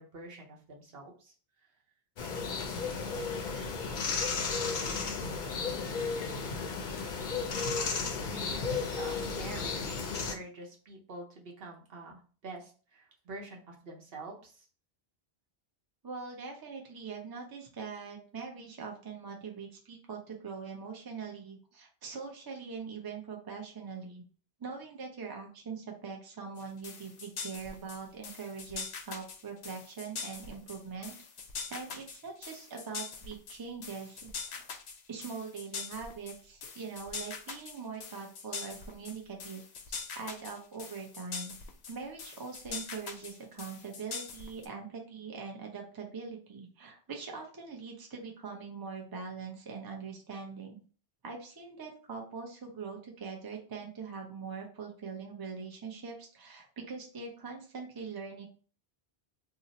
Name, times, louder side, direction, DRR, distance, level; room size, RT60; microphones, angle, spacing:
voice 1, 0.0-1.3 3.5-3.8 8.3-14.7, right 2 dB, 70° right, 0 dB, 1.0 m, -46 dB
sound 1, 2.2-10.3, left 4 dB, 60° left, 0.6 m, -34 dB
voice 2, 16.0-24.2 24.6-31.1 31.7-34.7 35.1-39.6 39.9-41.5 41.9-50.8 51.2-58.5, right 5 dB, 30° right, 1 dB, 0.5 m, -42 dB
sound 2, 26.6-44.7, left 5 dB, 85° left, 0.8 m, -43 dB
2.8 x 2.0 x 3.8 m, 0.40 s
omnidirectional pair, 1.0 m